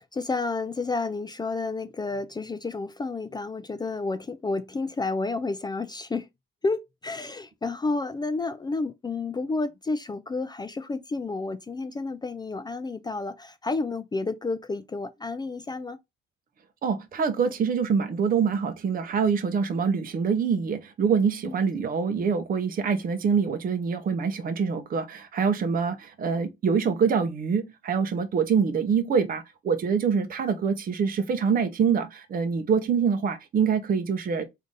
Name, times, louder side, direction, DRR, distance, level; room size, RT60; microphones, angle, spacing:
voice 1, 0.0-6.3 6.6-16.0 21.4-21.6, left 3 dB, 20° left, 0.4 m, -30 dB
voice 2, 16.8-34.4, right 6 dB, 45° right, 0.7 m, -25 dB
3.7 x 2.7 x 3.7 m
cardioid pair, 90°, 20 cm